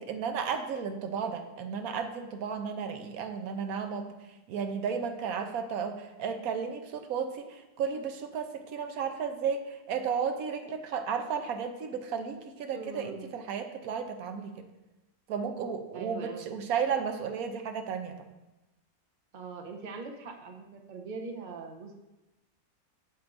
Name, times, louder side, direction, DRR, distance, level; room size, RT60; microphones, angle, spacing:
voice 1, 0.0-4.1 4.5-14.7 15.3-18.2, right 6 dB, 75° right, 7 dB, 1.1 m, -33 dB
voice 2, 12.7-13.4 15.9-16.5 19.3-21.9, right 4 dB, 40° right, 4 dB, 0.7 m, -41 dB
8.7 x 7.1 x 2.6 m, 1.0 s
omnidirectional pair, 1.6 m